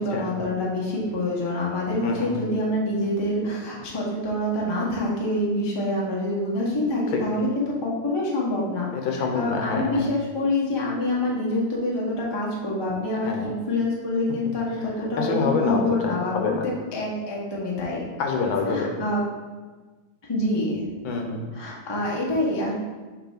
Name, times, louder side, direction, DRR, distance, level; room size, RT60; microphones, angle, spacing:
voice 1, 0.0-8.9 9.3-18.0 18.7-19.3 20.3-20.8 21.5-22.7, left 1 dB, 20° left, -4 dB, 0.7 m, -26 dB
voice 2, 8.9-10.0 13.2-13.5 15.2-16.6 18.2-18.9 21.0-21.5, left 4 dB, 75° left, 2 dB, 1.6 m, -26 dB
6.2 x 3.2 x 5.7 m, 1.3 s
omnidirectional pair, 2.2 m